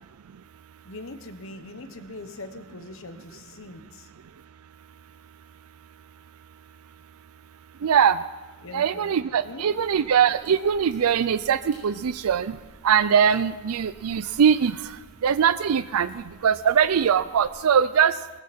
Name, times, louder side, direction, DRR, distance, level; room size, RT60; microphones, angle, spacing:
voice 1, 0.8-4.1 8.6-9.1 9.4-9.8, left 2 dB, 65° left, 8 dB, 1.2 m, -41 dB
voice 2, 7.8-8.2 8.7-12.5 12.8-14.8 15.2-18.1, right 7 dB, 80° right, 15 dB, 0.4 m, -21 dB
sound 1, 9.7-17.6, equal, 35° right, 6.9 m, -55 dB
20.0 x 15.0 x 4.3 m, 1.2 s
head